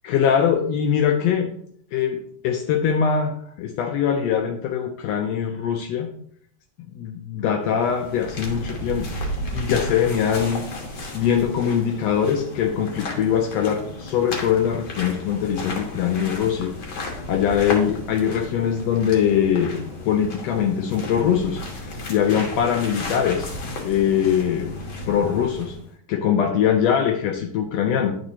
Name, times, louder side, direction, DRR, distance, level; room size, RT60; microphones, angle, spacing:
voice 1, 0.0-1.5 1.9-6.1 6.9-9.2 9.5-10.7 11.1-19.8 20.0-23.5 23.8-24.8 25.1-25.7 26.1-28.2, left 8 dB, 80° left, 4 dB, 1.5 m, -22 dB
sound 1, 7.6-25.9, left 1 dB, 55° left, 1.5 m, -33 dB
10.5 x 4.3 x 2.8 m, 0.64 s
omnidirectional pair, 3.5 m